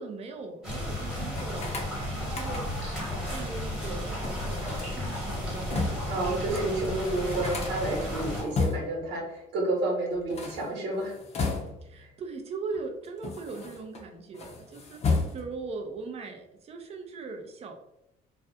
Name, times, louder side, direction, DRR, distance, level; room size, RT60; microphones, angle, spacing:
voice 1, 0.0-2.7 3.2-6.7 11.8-17.8, right 4 dB, 40° right, 5 dB, 0.5 m, -40 dB
sound 1, 0.6-8.4, left 1 dB, 5° right, 1.0 m, -33 dB
sound 2, 1.3-3.0 4.2-6.2 6.6-6.7 6.8-9.1 10.2-12.0 12.7-14.0 14.3-15.7, left 4 dB, 40° left, 0.6 m, -34 dB
voice 2, 6.1-11.2 12.0-12.1, right 2 dB, 90° right, -2 dB, 1.0 m, -30 dB
2.4 x 2.1 x 2.7 m, 0.85 s
cardioid pair, 110°, 17 cm